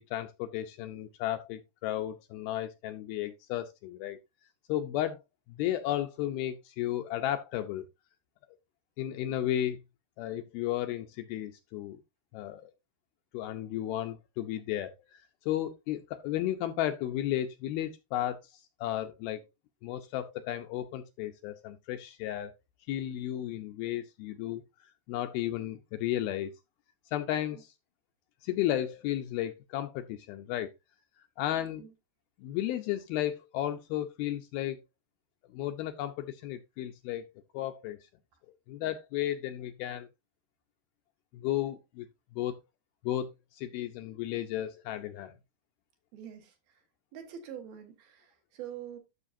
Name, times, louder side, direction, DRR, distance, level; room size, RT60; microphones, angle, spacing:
voice 1, 0.0-4.2 4.7-5.2 5.5-7.9 9.0-9.8 10.2-12.0 12.3-12.7 13.3-19.5 19.8-22.5 22.9-26.5 27.1-27.7 28.4-30.7 31.4-31.8 32.4-34.8 35.5-37.3 37.5-38.0 38.7-40.1 41.3-42.1 42.3-42.6 43.0-45.3, left 12 dB, 80° left, 2.2 m, -34 dB
voice 2, 46.1-46.5 47.1-49.0, right 9 dB, 65° right, 3.0 m, -44 dB
12.5 x 6.4 x 2.6 m
omnidirectional pair, 4.8 m